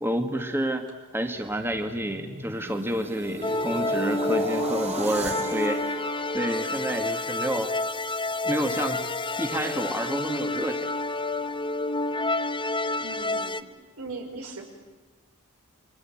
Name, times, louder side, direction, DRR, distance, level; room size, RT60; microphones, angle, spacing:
voice 1, 0.0-0.9 1.1-5.8 6.3-7.7 8.4-9.0 9.4-10.9, right 1 dB, 10° right, 5 dB, 1.7 m, -29 dB
sound 1, 1.4-7.5 8.0-8.2, right 2 dB, 30° right, 3.0 m, -37 dB
sound 2, 3.4-13.6, left 2 dB, 20° left, 0.9 m, -29 dB
voice 2, 13.0-13.7 14.0-14.6, right 3 dB, 85° right, 3 dB, 5.6 m, -39 dB
29.5 x 23.5 x 8.8 m, 1.2 s
head